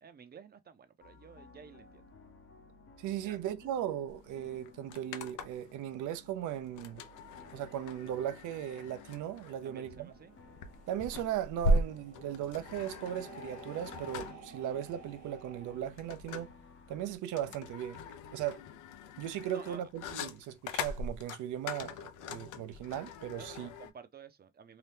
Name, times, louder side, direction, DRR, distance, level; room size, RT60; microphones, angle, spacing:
voice 1, 0.0-2.0 3.2-3.4 9.6-10.3 19.5-19.8 23.4-24.8, right 6 dB, 30° right, 0.6 m, -52 dB
sound 1, 1.0-17.2, left 4 dB, 45° left, 0.7 m, -58 dB
voice 2, 3.0-7.0 7.5-10.1 10.9-16.5 16.9-18.0 18.3-18.6 19.2-23.7, right 11 dB, 80° right, 0.5 m, -37 dB
sound 2, 4.1-4.2 4.4-5.7 6.8-23.9, equal, 80° left, 0.6 m, -38 dB
sound 3, 6.7-15.8, right 7 dB, 60° right, 0.9 m, -55 dB
2.8 x 2.2 x 3.3 m
cardioid pair, 90°, 30 cm